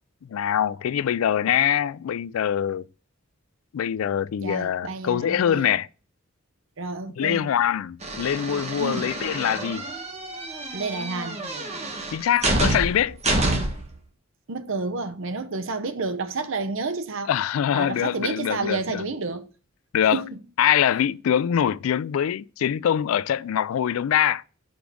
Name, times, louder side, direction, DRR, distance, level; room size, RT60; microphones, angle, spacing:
voice 1, 0.3-2.8 3.7-5.9 7.2-9.9 12.1-13.2 17.3-19.0 19.9-20.2 20.6-24.4, left 9 dB, 80° left, 0.3 m, -23 dB
voice 2, 4.4-5.7 6.8-7.5 8.8-9.1 10.7-11.4 14.5-17.3 17.7-19.5 20.1-20.4, right 3 dB, 65° right, 0.7 m, -30 dB
sound 1, 8.0-13.9, right 2 dB, 30° right, 1.4 m, -28 dB
5.2 x 5.1 x 6.1 m
head